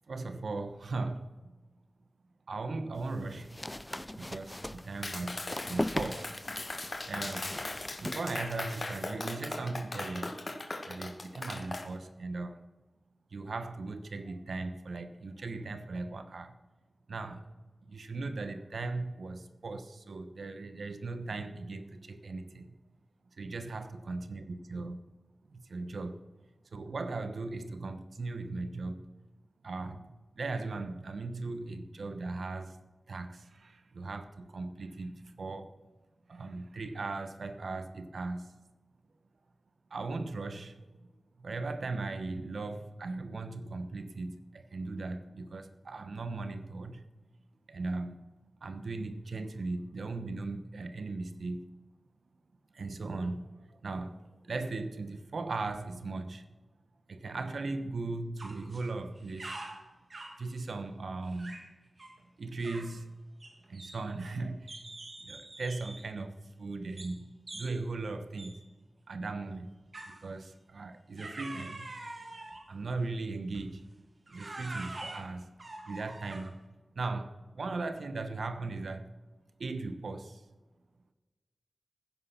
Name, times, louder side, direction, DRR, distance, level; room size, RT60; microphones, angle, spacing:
voice 1, 0.1-1.5 2.5-3.6 4.2-6.4 7.1-7.6 8.0-10.4 10.9-12.6 13.3-16.5 17.1-17.4 17.9-22.7 23.4-25.0 25.5-26.2 26.7-29.0 29.6-30.1 30.4-32.8 33.1-35.7 36.3-38.6 39.9-41.1 41.4-47.1 47.7-48.3 48.6-51.6 52.7-53.5 53.8-54.2 54.4-56.4 57.1-59.6 60.4-61.7 62.4-63.1 63.7-64.8 65.2-66.3 66.6-68.6 69.1-69.7 70.0-71.9 72.7-73.8 74.3-75.5 75.8-76.6 76.9-79.1 79.6-80.4, right 3 dB, 70° right, 1.1 m, -38 dB
sound 1, 3.0-9.1, left 1 dB, 10° left, 0.5 m, -39 dB
Clapping, 5.0-11.9, left 2 dB, 40° left, 1.6 m, -39 dB
sound 2, 58.4-58.9 59.2-60.4 61.3-61.7 62.0-62.2 62.6-63.0 63.4-64.3 64.7-66.1 67.0-67.2 67.5-67.8 68.4-68.6 69.9-70.3 71.2-72.7 73.5-73.8 74.3-76.6, right 2 dB, 45° right, 1.8 m, -45 dB
15.5 x 10.0 x 5.9 m
wide cardioid pair, 95°, 0 cm